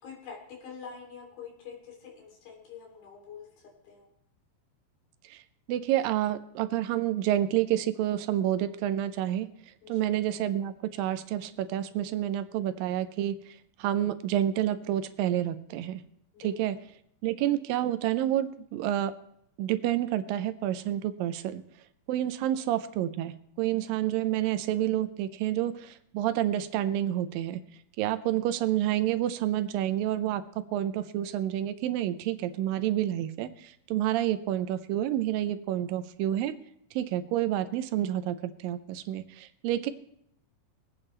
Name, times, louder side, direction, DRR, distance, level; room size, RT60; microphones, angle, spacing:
voice 1, 0.0-3.5 3.8-4.1 9.8-10.1 16.3-16.7 22.5-22.6, left 6 dB, 85° left, -1 dB, 4.9 m, -45 dB
voice 2, 5.7-9.5 9.9-16.0 16.4-16.8 17.2-19.1 19.6-21.6 22.1-27.6 28.0-30.4 30.7-36.6 37.0-39.9, right 12 dB, 80° right, 11 dB, 2.3 m, -29 dB
23.0 x 9.0 x 3.3 m, 0.72 s
omnidirectional pair, 4.1 m